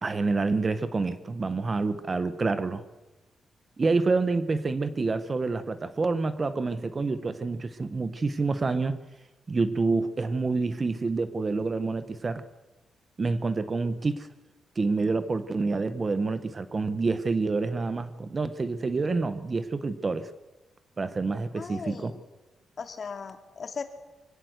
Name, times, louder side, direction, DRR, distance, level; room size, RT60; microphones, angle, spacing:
voice 1, 0.0-2.8 3.8-9.0 9.5-12.4 13.2-14.3 14.8-20.3 21.0-22.1, right 3 dB, 25° right, 12 dB, 0.8 m, -27 dB
voice 2, 21.5-22.2 22.8-23.8, left 5 dB, 40° left, 7 dB, 2.1 m, -37 dB
23.5 x 16.0 x 7.8 m, 1.2 s
wide cardioid pair, 165°, 0 cm